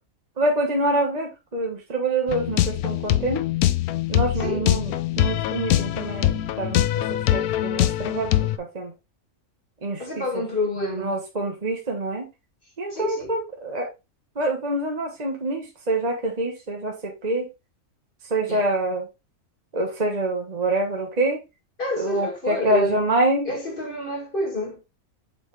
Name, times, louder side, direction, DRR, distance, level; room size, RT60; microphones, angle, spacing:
voice 1, 0.4-3.4 4.1-6.8 7.3-8.3 8.6-8.9 9.8-10.4 11.0-12.2 12.8-13.9 14.3-17.5 18.3-19.1 19.7-21.4 22.0-23.5, right 2 dB, 30° right, 1.2 m, -26 dB
sound 1, 2.3-8.6, left 13 dB, 80° left, 1.1 m, -23 dB
voice 2, 10.0-11.2 12.9-13.4 18.5-18.6 21.8-23.0 23.5-24.8, left 1 dB, 35° left, 2.2 m, -28 dB
7.6 x 3.9 x 3.2 m
omnidirectional pair, 1.5 m